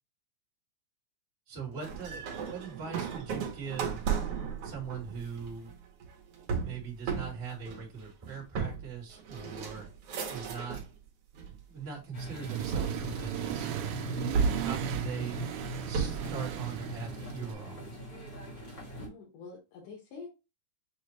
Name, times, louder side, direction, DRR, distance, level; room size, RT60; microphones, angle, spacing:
voice 1, 1.5-4.1 4.6-5.7 6.6-9.8 10.2-10.8 11.7-13.7 14.5-15.5 15.8-18.0, right 6 dB, 30° right, -2 dB, 1.5 m, -41 dB
sound 1, 1.8-11.0 11.3-12.0 12.7-13.8 14.3-16.4, right 6 dB, 60° right, 1.8 m, -35 dB
sound 2, 12.1-19.1, right 1 dB, 40° left, 1.4 m, -40 dB
Accelerating revving vroom, 12.3-17.5, right 13 dB, 80° right, 1.7 m, -37 dB
voice 2, 14.0-14.3 19.0-20.3, left 4 dB, 85° left, -4 dB, 2.8 m, -48 dB
6.6 x 2.4 x 3.0 m, 0.26 s
omnidirectional pair, 3.4 m